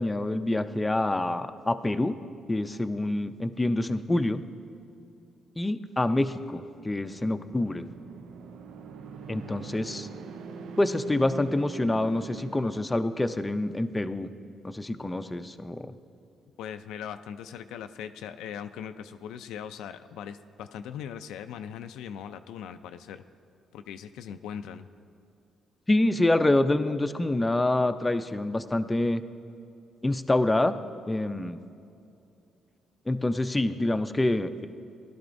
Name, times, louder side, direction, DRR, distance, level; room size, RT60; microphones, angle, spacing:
voice 1, 0.0-2.2 2.5-4.4 5.6-7.8 9.3-10.1 10.8-14.3 14.6-15.9 25.9-29.2 30.0-30.7 31.1-31.6 33.1-34.7, left 2 dB, 15° left, 9 dB, 0.5 m, -26 dB
sound 1, 6.6-13.5, right 5 dB, 80° right, 0.5 m, -43 dB
voice 2, 16.6-23.2 23.7-24.9, left 8 dB, 90° left, 9 dB, 0.4 m, -40 dB
17.5 x 11.5 x 2.6 m, 2.6 s
cardioid pair, 90°, 0 cm